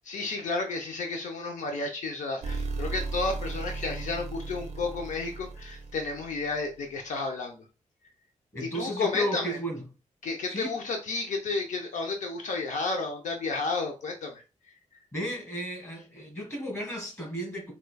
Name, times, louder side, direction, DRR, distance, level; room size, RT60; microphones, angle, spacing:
voice 1, 0.0-7.6 8.7-9.6 10.2-14.4, left 3 dB, 70° left, 0.6 m, -32 dB
sound 1, 2.4-6.7, right 3 dB, 55° right, 0.5 m, -36 dB
voice 2, 8.5-9.8 10.5-10.8 15.1-17.7, equal, 25° left, 1.6 m, -33 dB
4.8 x 2.2 x 2.2 m
wide cardioid pair, 155°, 13 cm